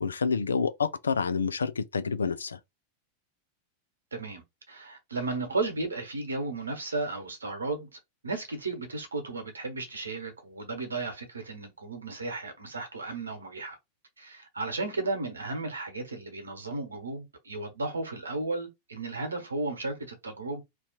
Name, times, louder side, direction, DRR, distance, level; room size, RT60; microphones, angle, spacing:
voice 1, 0.0-2.6, left 5 dB, 70° left, 0.3 m, -28 dB
voice 2, 4.1-7.9 8.2-13.8 14.2-20.6, right 3 dB, 75° right, 1.0 m, -34 dB
2.7 x 2.3 x 4.1 m
figure-of-eight pair, 90°, 0 cm